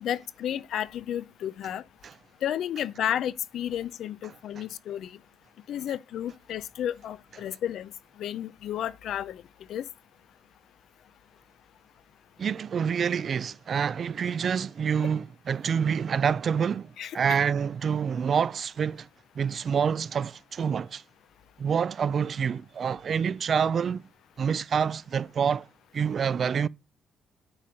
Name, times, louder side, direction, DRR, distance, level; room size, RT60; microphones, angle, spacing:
voice 1, 0.0-1.8 2.4-5.1 5.7-7.9 8.2-9.4 9.7-9.8 17.0-17.2, left 10 dB, 75° left, 0.5 m, -32 dB
voice 2, 12.4-19.1 19.4-21.0 21.6-24.0 24.4-25.7 25.9-26.7, right 7 dB, 50° right, 0.4 m, -27 dB
8.7 x 4.3 x 4.8 m
cardioid pair, 90°, 0 cm